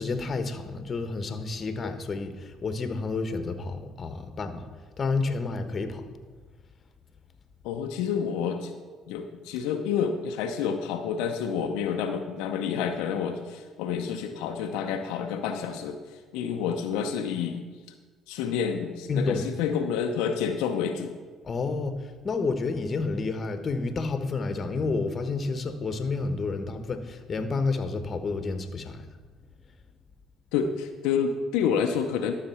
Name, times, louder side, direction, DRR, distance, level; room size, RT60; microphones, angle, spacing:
voice 1, 0.0-4.7 5.0-6.0 19.1-19.5 21.4-29.0, left 3 dB, 40° left, 9 dB, 1.2 m, -30 dB
voice 2, 7.6-8.7 9.1-16.0 16.3-17.6 18.3-21.1 30.5-32.4, left 7 dB, 85° left, 4 dB, 0.7 m, -29 dB
12.0 x 6.8 x 5.7 m, 1.5 s
supercardioid pair, 70°, 0 cm